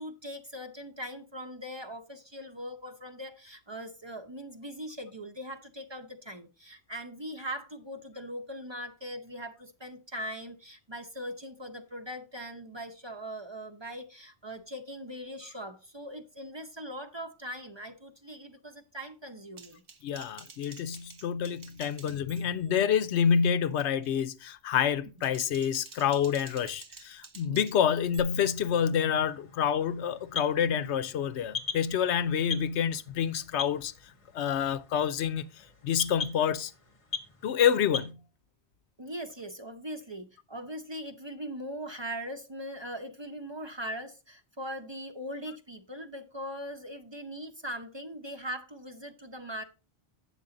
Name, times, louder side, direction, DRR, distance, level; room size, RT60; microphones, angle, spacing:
voice 1, 0.0-19.8 20.2-20.3 39.0-49.6, equal, 30° right, 0.7 m, -40 dB
Typing, 19.6-22.7 23.1-23.4 23.8-24.2 25.0-28.2, right 5 dB, 85° right, 1.3 m, -51 dB
voice 2, 20.0-33.9 34.3-35.4 35.8-36.7 37.4-38.2, left 8 dB, 85° left, 0.9 m, -28 dB
sound 1, 28.2-38.1, left 6 dB, 35° left, 0.9 m, -41 dB
8.9 x 6.8 x 3.8 m
omnidirectional pair, 1.1 m